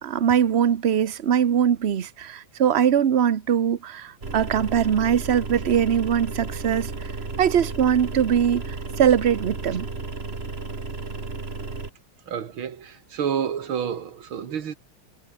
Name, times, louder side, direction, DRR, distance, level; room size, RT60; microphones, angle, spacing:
voice 1, 0.0-6.9 7.4-9.9, right 8 dB, 50° right, 0.8 m, -21 dB
sound 1, 4.2-11.9, right 3 dB, 30° right, 2.7 m, -33 dB
voice 2, 12.3-14.8, right 8 dB, 70° right, 2.5 m, -29 dB
omnidirectional pair, 2.3 m